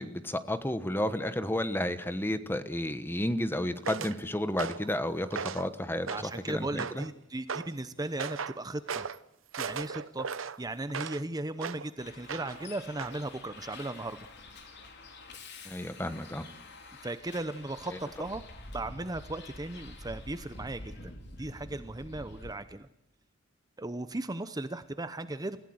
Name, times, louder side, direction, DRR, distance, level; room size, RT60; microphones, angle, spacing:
voice 1, 0.0-6.1 6.5-7.0 15.6-16.4 17.9-18.0, left 1 dB, 10° left, 11 dB, 1.2 m, -32 dB
sound 1, 3.8-4.2 4.6-4.9 5.3-5.7 6.1-6.4 6.8-7.1 7.5-7.7 8.2-8.6 8.9-9.2 9.5-11.2 11.6-11.9 12.3-12.7 13.0-13.2, right 6 dB, 75° right, 0.8 m, -37 dB
voice 2, 6.1-9.1 9.6-10.3 10.6-14.2 17.0-18.4 18.7-21.1 21.4-22.9 23.8-25.6, right 2 dB, 20° right, 11 dB, 0.8 m, -37 dB
Bus, 12.0-22.5, left 2 dB, 60° left, 3.7 m, -47 dB
29.0 x 16.0 x 8.0 m, 0.81 s
head